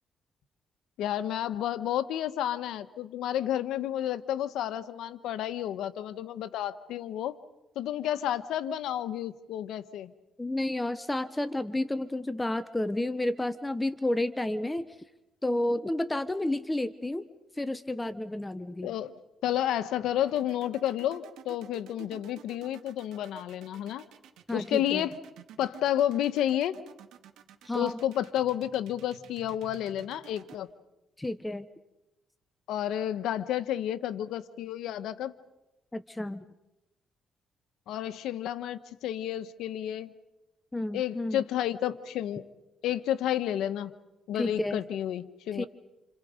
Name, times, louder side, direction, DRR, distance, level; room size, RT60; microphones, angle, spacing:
voice 1, 1.0-7.3 7.7-10.1 18.8-19.1 19.4-24.0 24.5-25.2 25.6-26.8 27.7-30.7 32.7-35.3 37.9-40.1 40.9-42.4 42.8-43.9 44.3-45.7, left 11 dB, 85° left, 11 dB, 1.4 m, -31 dB
voice 2, 10.4-14.9 15.4-17.2 17.6-18.9 24.5-25.0 27.6-28.0 31.2-31.7 35.9-36.4 40.7-41.4 44.4-44.8 45.5-45.7, left 1 dB, 15° left, 12 dB, 1.1 m, -31 dB
sound 1, 20.3-30.6, right 9 dB, 85° right, 2.5 m, -52 dB
29.5 x 28.5 x 5.2 m, 0.97 s
cardioid pair, 90°, 0 cm